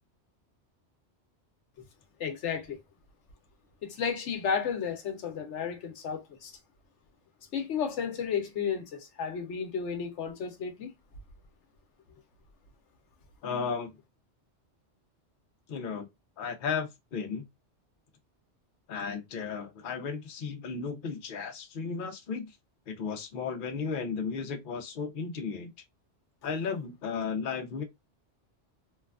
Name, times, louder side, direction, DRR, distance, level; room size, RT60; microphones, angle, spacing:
voice 1, 2.2-2.8 3.8-6.5 7.5-10.9, left 6 dB, 85° left, 1.1 m, -33 dB
voice 2, 13.4-13.9 15.7-16.1 16.4-17.5 18.9-22.5 22.9-25.7 26.4-27.8, left 5 dB, 55° left, 0.8 m, -34 dB
3.1 x 2.3 x 2.3 m
omnidirectional pair, 1.2 m